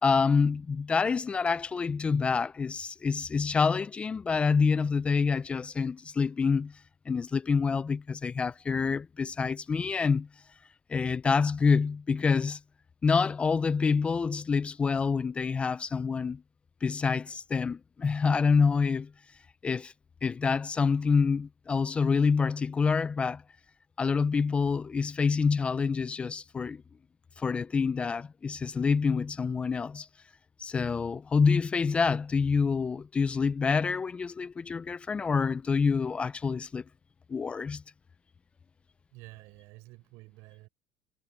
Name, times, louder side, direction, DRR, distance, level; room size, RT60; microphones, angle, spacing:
voice 1, 0.0-6.7 7.1-10.3 10.9-12.6 13.0-16.4 16.8-19.1 19.6-19.9 20.2-23.4 24.0-26.8 27.4-30.1 30.6-36.8 37.3-37.8, left 5 dB, 25° left, 0.5 m, -27 dB
voice 2, 39.1-40.7, right 23 dB, 70° right, 6.1 m, -50 dB
supercardioid pair, 105°, 5 cm